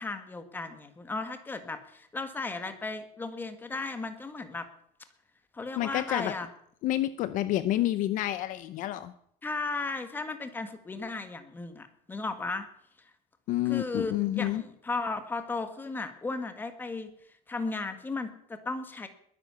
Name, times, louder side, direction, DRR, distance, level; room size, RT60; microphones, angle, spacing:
voice 1, 0.0-4.7 5.5-6.5 9.4-12.7 13.6-17.1 17.5-19.1, left 3 dB, 10° left, 9 dB, 1.5 m, -35 dB
voice 2, 5.8-6.3 6.8-9.1 13.5-14.6, left 14 dB, 50° left, 14 dB, 0.8 m, -29 dB
21.0 x 9.8 x 6.9 m, 0.69 s
cardioid pair, 170°, 17 cm